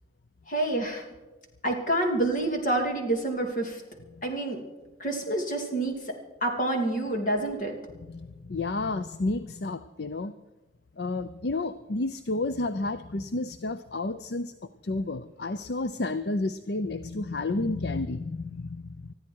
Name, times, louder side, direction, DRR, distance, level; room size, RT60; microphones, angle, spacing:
voice 1, 0.5-1.0 1.6-3.8 4.2-4.6 5.0-6.0 6.4-7.7, right 1 dB, 45° left, 3 dB, 3.0 m, -27 dB
voice 2, 8.1-10.3 11.0-14.5 14.8-19.1, left 2 dB, 65° left, 12 dB, 0.6 m, -31 dB
20.5 x 14.0 x 4.7 m, 1.2 s
head